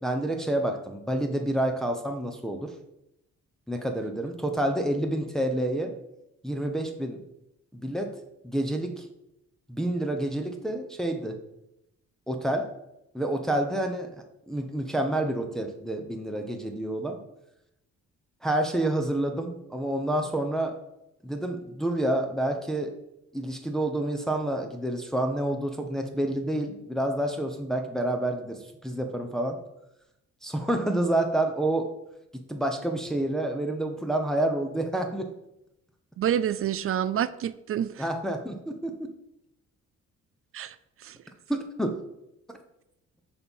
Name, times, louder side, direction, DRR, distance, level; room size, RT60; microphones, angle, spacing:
voice 1, 0.0-2.7 3.7-5.9 6.4-7.2 7.7-8.1 8.4-9.0 9.7-11.4 12.3-12.7 13.1-14.1 14.5-17.2 18.4-20.7 21.2-22.9 23.3-29.6 30.4-31.9 32.5-35.3 38.0-39.1 41.5-41.9 42.5-42.6, right 1 dB, ahead, 0.9 m, -28 dB
voice 2, 36.2-38.0 40.5-40.8 41.0-41.2, right 10 dB, 50° right, 0.4 m, -28 dB
6.6 x 4.2 x 5.4 m
cardioid pair, 90°, 30 cm